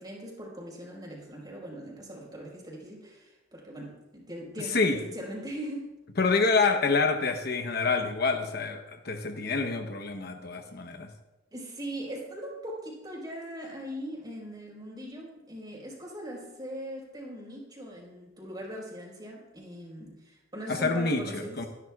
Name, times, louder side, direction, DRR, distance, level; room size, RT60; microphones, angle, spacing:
voice 1, 0.0-5.9 10.6-10.7 11.5-21.7, equal, 20° right, -2 dB, 4.5 m, -40 dB
voice 2, 6.2-11.1 20.7-21.6, left 4 dB, 55° left, 5 dB, 0.9 m, -27 dB
24.5 x 11.0 x 2.4 m, 1.0 s
head